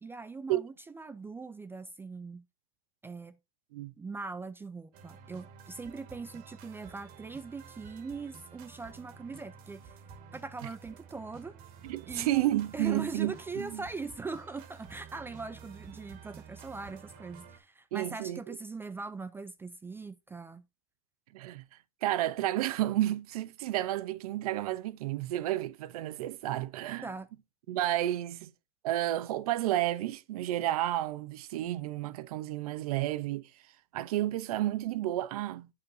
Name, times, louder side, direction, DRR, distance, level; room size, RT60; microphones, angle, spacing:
voice 1, 0.0-2.4 3.0-3.4 4.0-9.9 10.3-11.5 12.1-20.6 27.0-27.3, right 4 dB, 10° right, 0.4 m, -41 dB
sound 1, 4.9-17.6, right 6 dB, 55° right, 1.6 m, -51 dB
voice 2, 11.8-13.8 17.9-18.6 21.3-21.7 22.0-27.1 27.7-28.5 28.8-33.5 33.9-35.7, right 14 dB, 85° right, 0.7 m, -31 dB
8.5 x 6.4 x 2.6 m
supercardioid pair, 125°, 19 cm